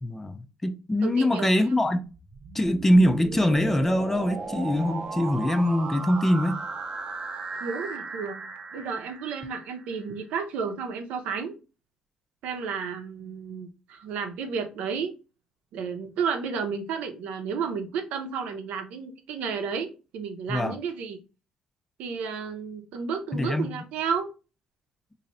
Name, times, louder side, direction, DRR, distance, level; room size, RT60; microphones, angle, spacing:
voice 1, 0.0-2.0 2.5-6.6 20.5-20.8 23.3-23.8, left 1 dB, 10° left, 0.4 m, -23 dB
voice 2, 1.0-1.5 7.6-11.6 12.4-15.1 15.7-21.2 22.0-24.3, right 6 dB, 85° right, 0.7 m, -32 dB
sound 1, 2.1-10.1, right 4 dB, 40° right, 0.7 m, -36 dB
3.0 x 2.7 x 3.9 m
cardioid pair, 110°, 2 cm